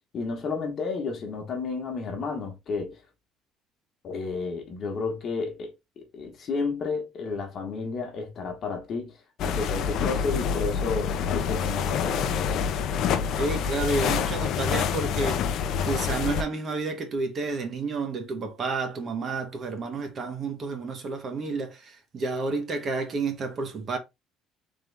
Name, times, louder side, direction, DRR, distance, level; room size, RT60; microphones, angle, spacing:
voice 1, 0.1-3.0 4.0-5.7 6.1-12.7, left 4 dB, 40° left, 1.2 m, -32 dB
sound 1, 9.4-16.4, left 7 dB, 55° left, 0.5 m, -27 dB
voice 2, 13.3-15.5 15.8-24.0, right 3 dB, 35° right, 1.1 m, -30 dB
3.7 x 3.4 x 3.3 m
cardioid pair, 145°, 0 cm